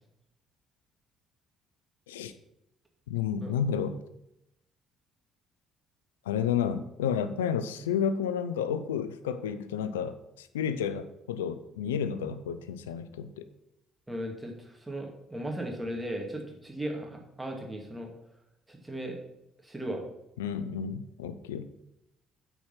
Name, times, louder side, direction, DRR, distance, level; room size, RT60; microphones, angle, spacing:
voice 1, 3.1-4.0 6.3-13.5 20.4-21.7, left 7 dB, 85° left, 13 dB, 0.4 m, -31 dB
voice 2, 14.1-18.1 18.7-19.2 19.6-20.0, right 1 dB, 10° right, 1 dB, 2.2 m, -37 dB
8.4 x 4.6 x 5.7 m, 0.86 s
hypercardioid pair, 55°, 0 cm